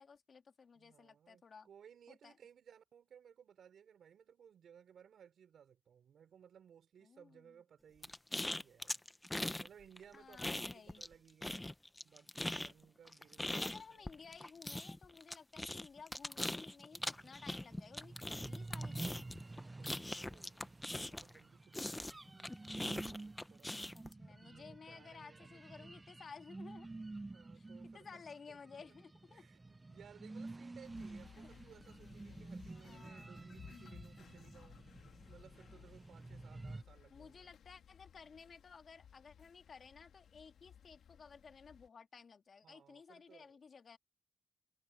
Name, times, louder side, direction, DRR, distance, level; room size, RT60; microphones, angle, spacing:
voice 1, 0.0-1.7 2.1-2.4 7.0-7.5 10.1-11.0 13.5-19.3 23.9-26.9 27.5-27.7 27.9-29.5 31.4-31.5 32.7-33.5 37.1-44.0, left 5 dB, 50° left, 2.4 m, -56 dB
voice 2, 0.7-9.0 9.6-11.7 12.0-14.0 19.8-23.9 24.3-26.0 27.3-28.2 28.5-29.0 29.3-37.5 42.6-43.6, right 8 dB, 75° right, 5.3 m, -62 dB
sound 1, 8.0-9.7 10.0-11.1 11.4-21.4 21.7-24.1, left 1 dB, 15° left, 0.9 m, -41 dB
sound 2, 16.9-36.8, right 2 dB, 20° right, 0.5 m, -50 dB
sound 3, 30.8-41.9, left 8 dB, 80° left, 2.9 m, -60 dB
cardioid pair, 90°, 0 cm